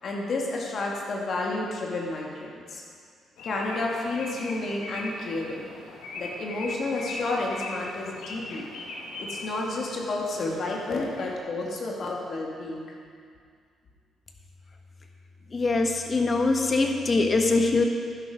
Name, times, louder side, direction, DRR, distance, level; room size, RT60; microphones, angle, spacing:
voice 1, 0.0-2.8 3.4-5.7 6.2-8.7 9.2-12.8, left 2 dB, 55° left, -2 dB, 2.4 m, -31 dB
sound 1, 3.4-11.4, left 2 dB, 80° left, 1.6 m, -40 dB
voice 2, 15.5-17.9, left 3 dB, 35° left, 3 dB, 1.4 m, -23 dB
12.0 x 10.5 x 5.2 m, 2.2 s
cardioid pair, 90°, 0 cm